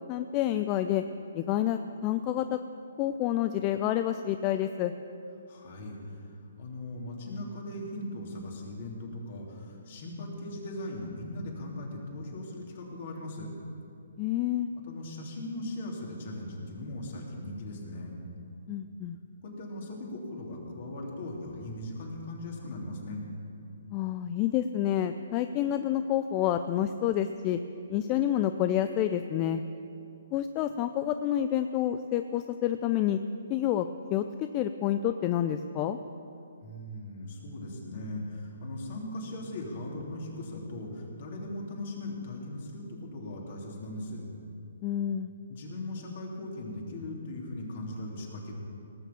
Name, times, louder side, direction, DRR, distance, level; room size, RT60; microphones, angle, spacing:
voice 1, 0.1-1.0 1.3-2.6 3.0-4.9 14.2-14.7 18.7-19.2 23.9-27.6 27.9-29.6 30.3-33.2 33.5-36.0 44.8-45.3, left 11 dB, 30° left, 9 dB, 0.4 m, -28 dB
voice 2, 5.5-13.5 14.9-18.2 19.4-23.2 36.6-44.2 45.5-48.5, left 1 dB, 50° left, -1 dB, 3.2 m, -39 dB
18.0 x 7.3 x 7.2 m, 2.5 s
hypercardioid pair, 145°, 0 cm